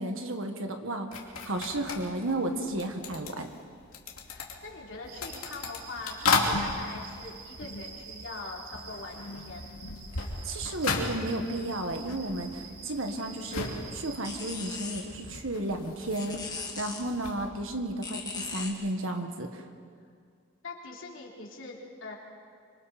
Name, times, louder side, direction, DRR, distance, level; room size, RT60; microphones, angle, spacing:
voice 1, 0.0-3.5 10.4-19.6, right 1 dB, 65° right, 5 dB, 1.7 m, -33 dB
sound 1, 1.1-8.4 8.7-17.5, left 3 dB, 80° left, 2.8 m, -35 dB
voice 2, 4.3-9.7 20.6-22.1, left 3 dB, 60° left, -2 dB, 3.5 m, -43 dB
sound 2, 5.0-14.8, right 5 dB, 85° right, 5.9 m, -47 dB
sound 3, 13.1-18.7, left 4 dB, 20° left, 1.9 m, -41 dB
26.0 x 25.5 x 4.4 m, 2.2 s
head